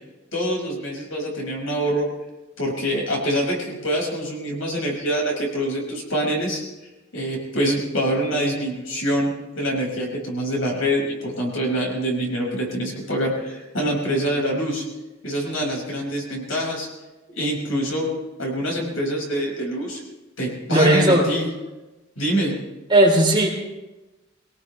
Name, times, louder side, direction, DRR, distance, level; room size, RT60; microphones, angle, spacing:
voice 1, 0.3-2.1 2.6-6.6 7.1-14.8 15.2-16.9 17.4-18.1 18.4-20.0 20.4-21.5 22.2-22.6, equal, 80° left, -1 dB, 5.9 m, -25 dB
voice 2, 20.7-21.2 22.9-23.5, right 1 dB, 25° right, -1 dB, 3.6 m, -16 dB
23.5 x 18.5 x 3.3 m, 1.1 s
head